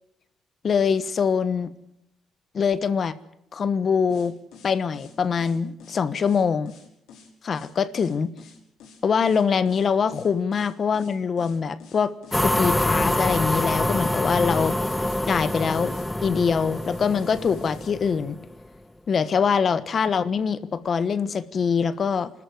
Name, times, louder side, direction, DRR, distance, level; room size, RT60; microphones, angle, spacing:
voice 1, 0.6-1.7 2.5-3.1 3.5-4.3 4.6-6.7 7.4-8.3 9.0-14.8 15.3-15.9 16.2-18.4 19.1-22.3, left 6 dB, 50° left, 1.2 m, -23 dB
sound 1, 4.1-18.0, left 5 dB, 90° left, 5.8 m, -49 dB
sound 2, 12.3-18.6, left 1 dB, 10° left, 1.0 m, -26 dB
25.5 x 13.5 x 9.6 m
cardioid pair, 90°, 0 cm